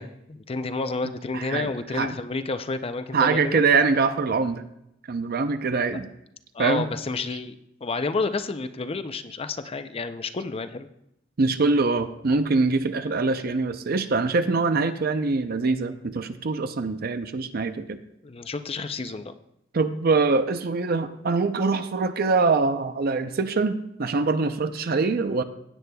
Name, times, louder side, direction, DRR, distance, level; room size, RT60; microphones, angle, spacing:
voice 1, 0.0-3.6 6.5-7.5 7.8-10.9 18.2-19.3, left 3 dB, 30° left, 10 dB, 0.5 m, -30 dB
voice 2, 1.3-2.2 3.1-4.6 5.1-6.1 6.6-6.9 7.3-7.4 11.4-18.0 19.7-25.4, right 4 dB, 55° right, 9 dB, 0.6 m, -24 dB
16.0 x 9.2 x 2.3 m, 0.80 s
head